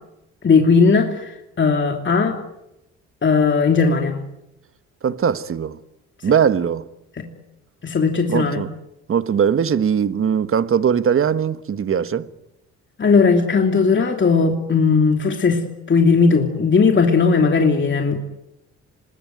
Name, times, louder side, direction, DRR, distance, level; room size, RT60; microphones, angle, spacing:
voice 1, 0.4-1.3 1.6-2.4 3.2-4.2 7.2-7.3 7.8-8.6 13.0-15.6 15.9-18.2, left 5 dB, 40° left, 3.0 m, -17 dB
voice 2, 5.0-5.8 6.2-6.9 8.3-8.7 9.1-12.3, right 7 dB, 45° right, 1.3 m, -20 dB
25.5 x 21.0 x 9.3 m
cardioid pair, 90°, 30 cm